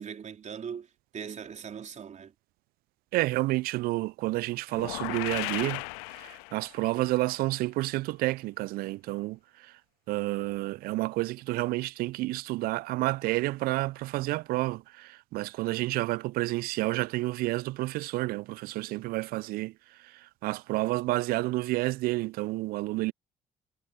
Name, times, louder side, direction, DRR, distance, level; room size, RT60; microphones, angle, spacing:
voice 1, 0.0-2.3, right 7 dB, 45° right, 3.9 m, -40 dB
voice 2, 3.1-5.8 6.1-9.7 10.1-19.7 20.0-23.1, right 19 dB, 65° right, 0.8 m, -30 dB
sound 1, 4.7-6.9, left 38 dB, 70° left, 0.5 m, -36 dB
figure-of-eight pair, 45°, 17 cm